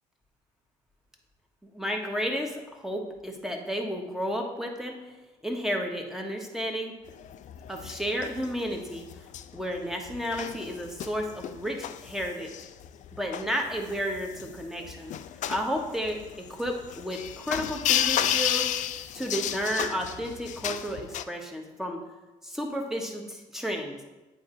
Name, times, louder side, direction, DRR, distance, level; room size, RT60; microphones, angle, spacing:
voice 1, 1.7-4.9 5.4-6.9 7.7-9.0 9.5-12.5 13.1-15.1 15.5-22.0 22.4-23.9, equal, 5° right, 2 dB, 1.2 m, -32 dB
sound 1, 7.1-21.2, left 10 dB, 55° left, 0.4 m, -32 dB
8.4 x 4.4 x 3.8 m, 1.1 s
supercardioid pair, 80°, 15 cm